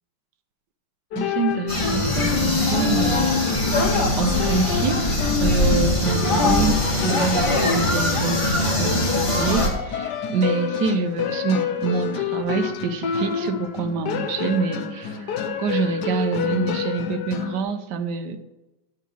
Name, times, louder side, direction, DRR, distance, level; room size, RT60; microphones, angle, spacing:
sound 1, 1.1-17.6, left 7 dB, 65° left, 1.2 m, -27 dB
voice 1, 1.2-3.5 4.2-5.1 5.4-15.3 15.6-18.4, right 5 dB, 65° right, 8 dB, 1.2 m, -26 dB
sound 2, 1.7-9.7, left 1 dB, 15° left, 1.4 m, -22 dB
10.0 x 4.0 x 6.9 m, 1.0 s
omnidirectional pair, 2.3 m